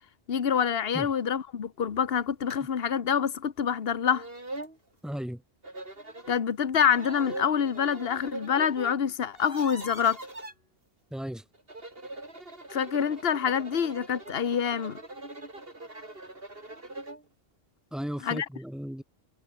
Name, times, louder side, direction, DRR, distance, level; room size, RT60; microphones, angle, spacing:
voice 1, 0.3-4.2 6.3-10.2 12.7-15.0 18.2-18.5, left 7 dB, 65° left, 1.3 m, -26 dB
sound 1, 2.5-2.6 3.1-3.2 3.8-3.9 4.1-4.8 5.6-6.4 6.9-9.0 9.2-10.5 11.5-17.2, right 2 dB, 60° right, 4.9 m, -42 dB
voice 2, 5.0-5.4 11.1-11.4 17.9-19.0, equal, ahead, 3.5 m, -35 dB
omnidirectional pair, 1.1 m